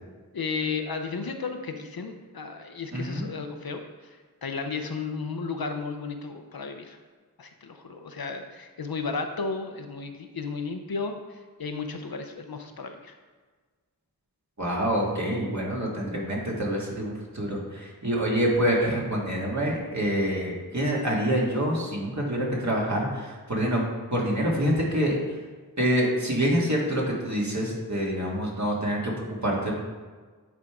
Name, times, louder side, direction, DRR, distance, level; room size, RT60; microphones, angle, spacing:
voice 1, 0.3-7.0 7.4-13.2, left 4 dB, 65° left, 6 dB, 0.7 m, -34 dB
voice 2, 2.9-3.2 14.6-23.8 24.1-25.2 25.8-29.7, equal, 45° right, -3 dB, 1.9 m, -26 dB
9.0 x 3.6 x 4.8 m, 1.4 s
wide cardioid pair, 40°, 38 cm